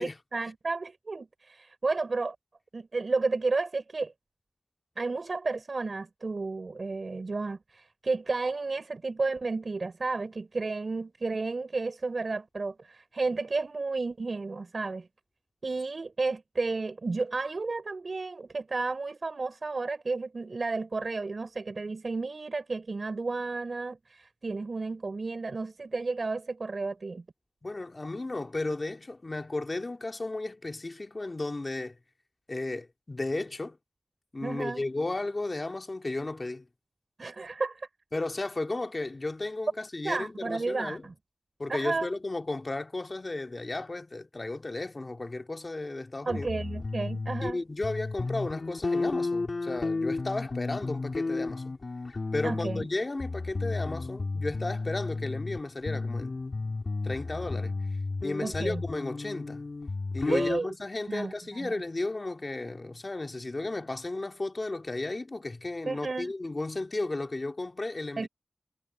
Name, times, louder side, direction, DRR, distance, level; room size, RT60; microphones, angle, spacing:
voice 1, 0.0-2.4 2.7-4.1 5.0-15.1 15.6-27.2 34.4-34.8 37.2-37.9 40.0-41.1 41.7-42.1 46.3-47.6 52.4-52.9 58.4-58.8 60.3-60.7 61.1-61.7 65.9-66.3 68.2-68.3, right 3 dB, 85° right, 5.7 m, -32 dB
voice 2, 27.6-32.0 32.5-33.8 34.3-36.7 38.1-41.1 41.6-46.5 47.4-51.8 52.3-56.4 57.0-57.8 58.2-59.6 60.1-68.3, left 2 dB, 55° left, 2.3 m, -34 dB
sound 1, 46.3-47.5 47.8-52.9 53.2-55.6 55.9-60.6, left 3 dB, 80° left, 3.3 m, -32 dB
wide cardioid pair, 55°, 0 cm